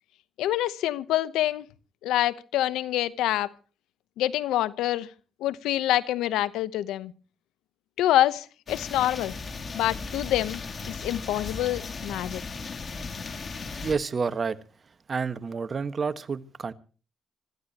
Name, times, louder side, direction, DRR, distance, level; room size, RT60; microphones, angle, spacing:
voice 1, 0.4-1.6 2.0-3.5 4.2-5.1 5.4-7.1 8.0-9.4 9.7-10.6 10.9-12.4, left 13 dB, 85° left, 0.9 m, -26 dB
sound 1, 8.7-14.0, left 4 dB, 45° left, 3.2 m, -36 dB
voice 2, 13.8-14.6 15.1-16.7, right 5 dB, 45° right, 1.5 m, -29 dB
26.0 x 14.5 x 3.0 m
supercardioid pair, 65°, 0 cm